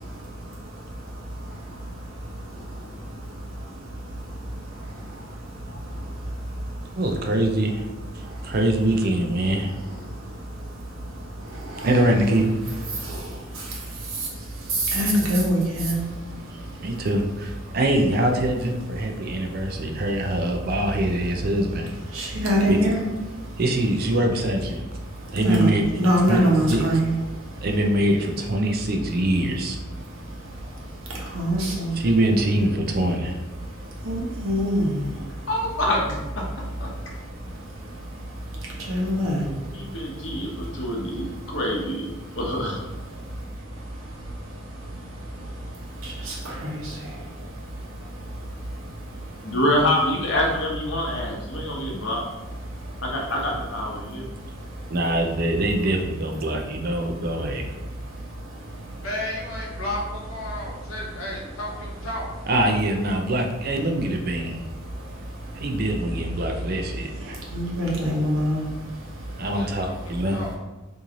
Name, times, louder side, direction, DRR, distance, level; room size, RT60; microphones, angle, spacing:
voice 1, 7.0-7.9 8.4-9.7 11.8-12.5 16.5-21.9 22.7-23.0 23.6-24.8 25.3-25.8 26.3-26.4 26.7-26.8 27.6-29.8 31.9-33.4 54.9-57.7 62.5-64.5 65.6-67.4 69.4-70.4, right 1 dB, 45° right, 3 dB, 0.4 m, -23 dB
voice 2, 14.9-16.0 22.1-23.0 25.4-27.1 31.3-31.9 34.1-35.0 38.9-39.5 46.6-46.7 67.5-68.6, equal, 85° right, -3 dB, 1.0 m, -22 dB
voice 3, 35.5-36.4 36.8-36.9 39.7-42.8 49.4-52.2 53.0-54.3, left 1 dB, 60° left, -2 dB, 0.9 m, -26 dB
voice 4, 59.0-62.3 69.5-70.5, left 1 dB, 85° left, -2 dB, 1.0 m, -33 dB
3.0 x 2.6 x 3.7 m, 1.1 s
head